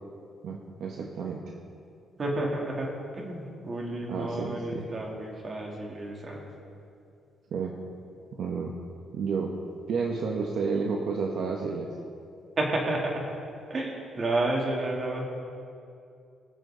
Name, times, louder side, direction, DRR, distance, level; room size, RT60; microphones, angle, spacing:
voice 1, 0.4-1.5 4.1-4.9 7.5-7.7 8.3-8.8 9.1-9.5 9.9-11.9, right 5 dB, 70° right, 0 dB, 1.2 m, -31 dB
voice 2, 2.2-6.4 12.6-13.3 13.7-15.2, right 2 dB, 40° right, -1 dB, 2.9 m, -31 dB
22.0 x 7.6 x 3.9 m, 2.5 s
cardioid pair, 90°, 0 cm